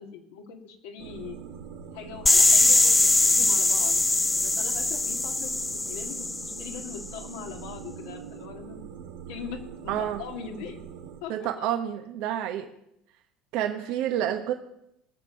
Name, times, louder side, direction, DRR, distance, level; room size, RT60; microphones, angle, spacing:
voice 1, 0.0-1.4 1.9-4.0 4.4-5.5 5.8-6.2 6.4-9.0 9.3-10.8 11.2-11.7, left 7 dB, 80° left, 3 dB, 2.0 m, -41 dB
sound 1, 1.0-11.2, right 8 dB, 90° right, 2.1 m, -43 dB
sound 2, 2.3-7.0, left 2 dB, 15° left, 0.5 m, -22 dB
voice 2, 9.9-10.2 11.3-12.7 13.5-14.5, right 11 dB, 70° right, 6 dB, 1.0 m, -29 dB
19.0 x 6.8 x 6.4 m, 0.80 s
supercardioid pair, 95°, 0 cm